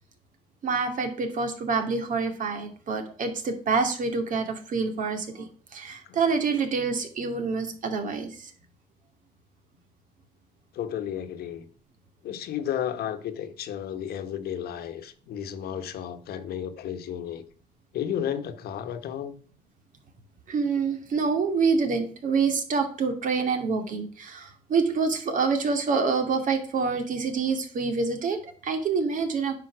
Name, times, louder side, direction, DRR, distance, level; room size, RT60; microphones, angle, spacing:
voice 1, 0.6-8.5 20.5-29.6, right 4 dB, 50° right, 2.4 m, -27 dB
voice 2, 10.7-11.7 12.2-17.4 17.9-19.3, left 9 dB, 65° left, 1.4 m, -33 dB
9.8 x 5.6 x 6.2 m
cardioid pair, 110°, 17 cm